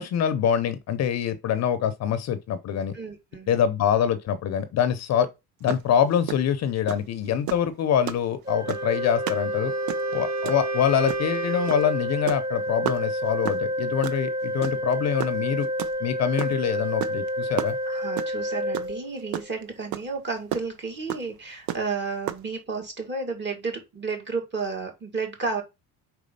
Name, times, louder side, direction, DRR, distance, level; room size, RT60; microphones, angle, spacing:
voice 1, 0.0-2.9 3.5-5.3 5.6-9.7 10.1-15.7 16.0-17.8, left 8 dB, 50° left, 0.7 m, -25 dB
voice 2, 2.9-3.6 17.9-25.6, right 4 dB, 30° right, 1.9 m, -32 dB
sound 1, 5.7-5.8 6.1-6.4 6.9-7.1 7.5-7.7 8.1-8.2 8.7-8.9 9.3-9.4 9.7-10.1 10.4-10.6 11.1-11.4 11.7-11.9 12.1-12.4 12.8-13.0 13.4-13.6 14.0-14.2 14.6-14.9 15.2-16.6 17.0-17.3 17.6-18.4 18.7-18.9 19.2-19.6 19.9-20.0 20.5-20.6 21.1-21.2 21.7-21.9 22.3-22.4, right 12 dB, 90° right, 0.8 m, -30 dB
Organ, 8.5-19.5, equal, 10° right, 0.8 m, -29 dB
Wind instrument woodwind instrument, 8.6-12.2, right 9 dB, 50° right, 1.0 m, -35 dB
4.6 x 4.2 x 5.3 m
cardioid pair, 170°, 35 cm